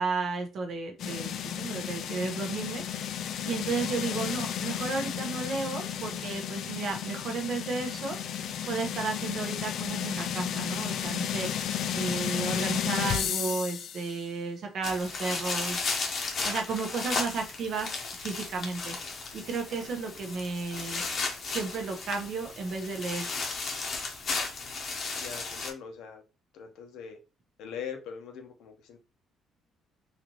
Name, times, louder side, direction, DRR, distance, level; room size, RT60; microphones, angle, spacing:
voice 1, 0.0-15.8 16.4-18.9 19.3-21.0 21.5-23.3, right 4 dB, 50° right, 3 dB, 0.9 m, -33 dB
sound 1, 1.0-14.2, left 9 dB, 55° left, 0.3 m, -33 dB
sound 2, 14.8-25.7, left 4 dB, 40° left, 0.9 m, -35 dB
voice 2, 25.2-26.2 26.5-27.2 27.6-29.0, left 7 dB, 80° left, 4 dB, 0.9 m, -41 dB
4.2 x 2.7 x 2.9 m, 0.31 s
cardioid pair, 160°, 0 cm